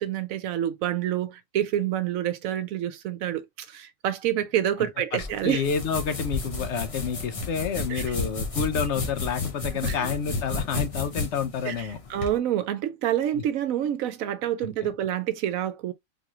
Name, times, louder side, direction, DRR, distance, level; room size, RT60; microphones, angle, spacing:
voice 1, 0.0-5.6 7.9-8.2 9.8-10.1 11.6-15.9, right 11 dB, 80° right, 1.0 m, -28 dB
voice 2, 5.1-12.0 14.8-14.9, left 6 dB, 60° left, 0.9 m, -29 dB
sound 1, 5.2-12.3, left 4 dB, 35° left, 0.7 m, -32 dB
3.9 x 3.0 x 2.3 m
omnidirectional pair, 1.4 m